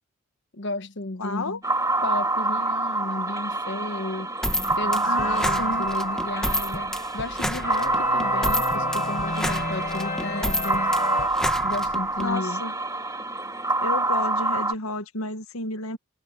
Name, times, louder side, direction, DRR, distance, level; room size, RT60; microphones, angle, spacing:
voice 1, 0.5-1.6 2.0-4.3 4.8-10.9 11.6-12.6, left 2 dB, 55° left, 1.3 m, -33 dB
voice 2, 1.2-1.6 5.0-5.9 12.2-12.7 13.8-16.0, left 2 dB, 85° left, 1.6 m, -31 dB
sound 1, 1.6-14.7, right 2 dB, 15° right, 2.3 m, -26 dB
sound 2, 4.4-12.3, equal, 5° left, 1.3 m, -30 dB
sound 3, 5.2-7.1 7.6-11.3, left 3 dB, 35° left, 6.4 m, -33 dB
head